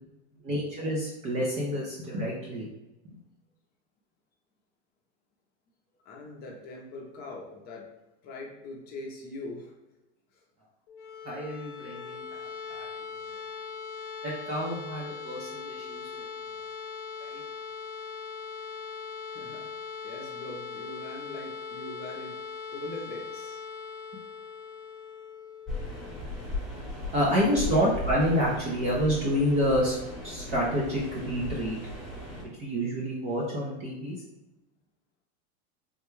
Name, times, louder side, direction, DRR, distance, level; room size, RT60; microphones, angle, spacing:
voice 1, 0.4-2.7 11.2-12.8 14.2-16.1 17.2-17.4 27.1-29.9 30.2-31.8 32.6-34.2, equal, 20° right, -4 dB, 0.3 m, -28 dB
voice 2, 6.0-7.9 8.2-9.7 10.3-10.4 19.3-19.7 20.0-22.4 22.7-23.6 27.7-27.8, left 2 dB, 30° left, 0 dB, 0.6 m, -42 dB
sound 1, 10.9-26.7, left 5 dB, 75° left, 0.6 m, -40 dB
sound 2, 25.7-32.4, left 2 dB, ahead, 0.9 m, -37 dB
3.4 x 2.2 x 3.0 m, 1.0 s
supercardioid pair, 140°, 35 cm